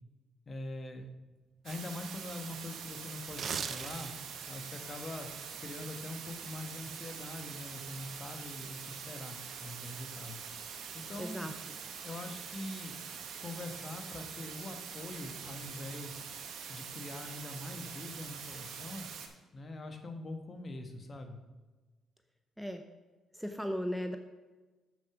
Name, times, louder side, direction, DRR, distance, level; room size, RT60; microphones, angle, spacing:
voice 1, 0.5-1.1 1.6-4.1 4.5-5.3 5.6-10.4 10.9-11.5 12.0-13.0 13.4-16.2 16.7-19.1 19.5-21.4, left 2 dB, 40° left, 5 dB, 1.2 m, -43 dB
sound 1, 1.6-19.3, right 7 dB, 75° right, 1.0 m, -44 dB
sound 2, 3.2-4.4 4.8-5.0, right 6 dB, 55° right, 0.6 m, -37 dB
voice 2, 11.2-11.5 22.6-22.8 23.3-24.2, equal, ahead, 6 dB, 0.6 m, -36 dB
7.5 x 6.2 x 4.8 m, 1.2 s
cardioid pair, 90°, 0 cm